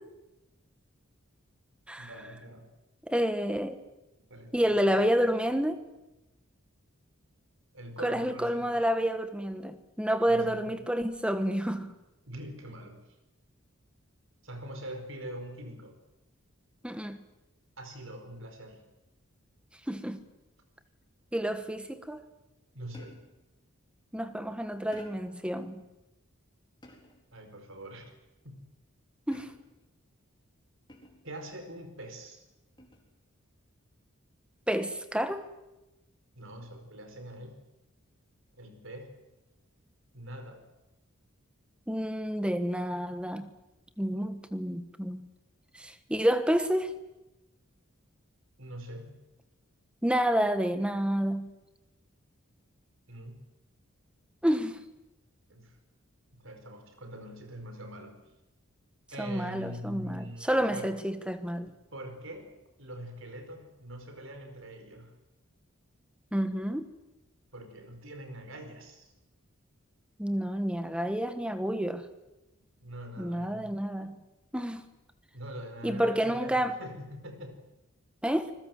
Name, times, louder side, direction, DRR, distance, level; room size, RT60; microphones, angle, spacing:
voice 1, 2.0-2.7 4.3-5.1 7.7-8.7 10.2-10.8 12.3-13.2 14.4-16.0 17.8-18.8 22.7-23.2 27.3-28.2 28.4-28.5 31.2-32.4 36.3-37.6 38.6-39.1 40.1-40.6 48.6-49.2 53.1-53.4 55.5-55.8 56.4-58.2 59.1-61.0 61.6-62.5 62.8-65.2 67.5-69.1 72.8-73.8 75.3-77.6, right 1 dB, 65° right, 4.7 m, -43 dB
voice 2, 3.1-3.8 4.5-5.8 8.0-11.9 16.8-17.2 19.9-20.2 21.3-22.2 24.1-25.8 29.3-29.5 34.7-35.5 41.9-43.5 44.0-45.3 45.7-47.0 50.0-51.5 54.4-54.8 59.2-61.7 66.3-66.9 70.2-72.0 73.2-74.2 74.5-74.9 75.8-76.7 78.2-78.5, equal, 5° right, 1.3 m, -29 dB
sound 1, 22.9-23.5 24.9-25.4 26.8-27.3 29.3-29.9 30.9-31.4 32.8-33.2, left 1 dB, 20° left, 4.1 m, -53 dB
26.5 x 21.5 x 7.7 m
head